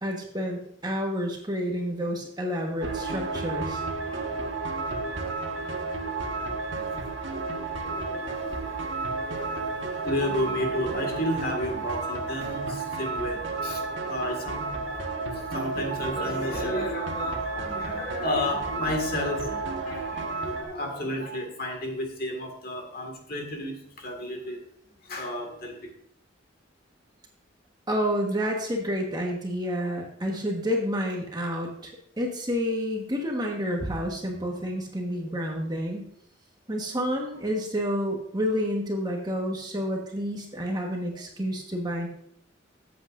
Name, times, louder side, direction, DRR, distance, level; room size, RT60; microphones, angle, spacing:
voice 1, 0.0-3.8 27.9-36.1 36.7-42.1, equal, 20° right, 1 dB, 1.3 m, -29 dB
sound 1, 2.8-20.6, right 3 dB, 65° right, 1.5 m, -32 dB
voice 2, 7.6-24.6 25.0-25.9, left 1 dB, 50° left, 3 dB, 1.9 m, -33 dB
13.5 x 8.2 x 2.5 m, 0.66 s
head